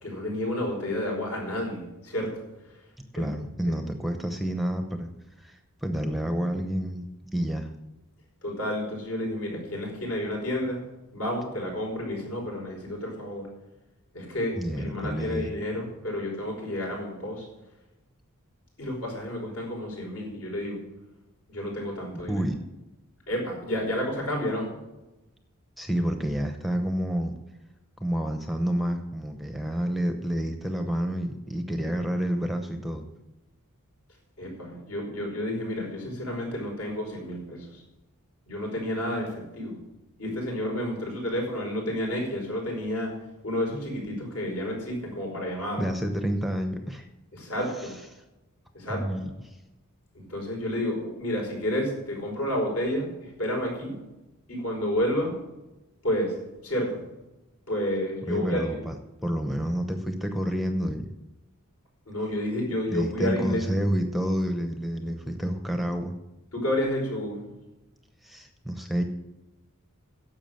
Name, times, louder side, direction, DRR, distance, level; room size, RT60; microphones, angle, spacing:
voice 1, 0.0-2.3 3.2-3.3 3.7-3.8 8.4-10.8 11.1-13.4 14.1-17.4 18.8-20.8 21.5-22.4 23.3-24.7 34.4-37.8 38.5-39.8 40.2-43.1 43.4-45.8 47.3-47.9 48.7-49.0 50.1-54.0 54.5-55.3 56.0-56.4 56.6-57.0 57.7-58.6 62.1-63.6 66.5-67.4, left 1 dB, 70° left, -1 dB, 5.0 m, -30 dB
voice 2, 3.1-5.1 5.4-7.0 7.3-7.7 14.6-15.5 22.3-22.6 25.8-27.3 28.0-33.1 45.8-47.0 47.8-47.9 48.9-49.6 58.3-58.9 59.2-61.1 62.9-66.1 68.2-69.0, equal, ahead, 6 dB, 0.7 m, -29 dB
10.5 x 7.2 x 7.6 m, 1.0 s
head